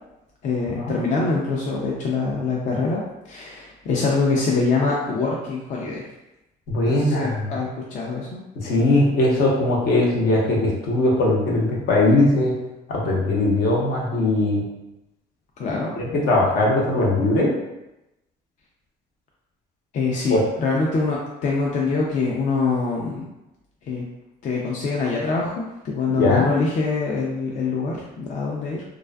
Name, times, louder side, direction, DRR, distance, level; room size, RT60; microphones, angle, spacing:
voice 1, 0.4-3.0 3.3-6.0 6.9-8.4 15.6-15.9 19.9-23.2 23.9-24.0 24.4-28.8, left 4 dB, 50° left, -3 dB, 0.4 m, -24 dB
voice 2, 6.7-7.5 8.6-12.5 12.9-14.6 16.0-17.5 20.3-20.4 26.2-26.4, left 2 dB, 70° left, -3 dB, 0.8 m, -20 dB
2.5 x 2.3 x 2.2 m, 0.93 s
cardioid pair, 110°, 17 cm